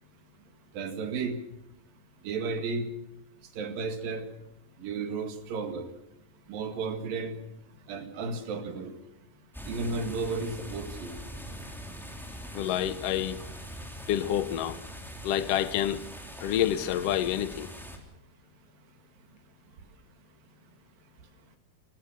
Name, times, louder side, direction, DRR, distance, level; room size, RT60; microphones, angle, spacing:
voice 1, 0.7-1.4 2.2-2.9 3.6-4.2 4.8-5.9 6.5-7.3 7.9-8.9 9.7-11.1, right 4 dB, 85° right, 7 dB, 3.7 m, -33 dB
sound 1, 9.5-18.0, equal, ahead, 2.7 m, -42 dB
voice 2, 12.5-13.4 14.1-14.8 15.2-16.0 16.4-17.7, left 11 dB, 65° left, 14 dB, 1.6 m, -28 dB
29.0 x 15.0 x 6.4 m, 0.88 s
omnidirectional pair, 3.9 m